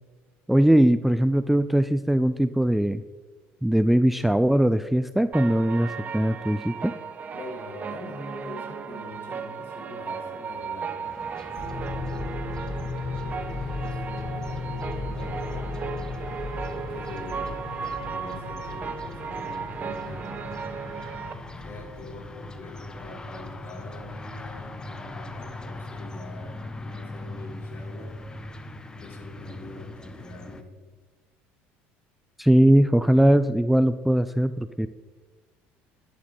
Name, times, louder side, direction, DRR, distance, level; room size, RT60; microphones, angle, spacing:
voice 1, 0.5-3.0 3.6-5.9 6.1-6.9 32.4-34.9, right 1 dB, 5° right, 12 dB, 0.4 m, -20 dB
sound 1, 5.3-21.3, right 6 dB, 30° right, 0.9 m, -36 dB
voice 2, 7.3-11.1 11.4-12.4 13.3-15.7 16.6-17.6 18.0-20.5 21.6-28.1 29.0-30.7, left 2 dB, 45° left, 1 dB, 3.4 m, -43 dB
sound 2, 11.0-30.6, left 2 dB, 15° left, 0.9 m, -42 dB
sound 3, 11.6-28.7, left 3 dB, 80° left, 3.4 m, -38 dB
11.5 x 11.5 x 3.8 m, 1.3 s
supercardioid pair, 105°, 5 cm